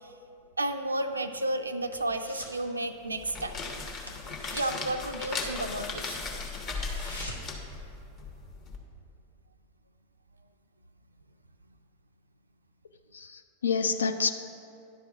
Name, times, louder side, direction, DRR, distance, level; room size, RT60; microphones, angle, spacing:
voice 1, 0.6-3.6 4.5-6.2, right 1 dB, 80° right, 7 dB, 0.3 m, -32 dB
sound 1, 1.0-2.6 2.9-3.2 3.5-3.6 4.0-5.9 6.2-6.3 6.6-7.7 8.0-8.1, left 1 dB, 85° left, 1.0 m, -45 dB
sound 2, 3.1-8.8, left 3 dB, 35° left, 1.2 m, -37 dB
voice 2, 13.1-14.3, left 5 dB, 70° left, 9 dB, 0.3 m, -28 dB
10.5 x 4.7 x 5.9 m, 2.8 s
figure-of-eight pair, 90°, 0 cm